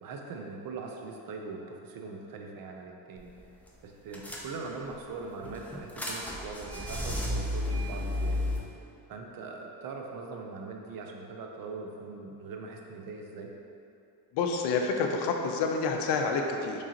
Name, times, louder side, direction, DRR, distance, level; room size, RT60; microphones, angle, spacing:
voice 1, 0.0-3.3 3.8-8.4 9.1-13.5, right 4 dB, 50° right, 2 dB, 0.5 m, -41 dB
sound 1, 3.2-3.4 3.7-3.8 4.1-4.9 5.4-8.6, left 1 dB, 5° left, 0.4 m, -32 dB
voice 2, 14.3-16.8, left 4 dB, 65° left, 3 dB, 0.5 m, -28 dB
3.5 x 3.0 x 2.8 m, 2.6 s
hypercardioid pair, 65°, 45 cm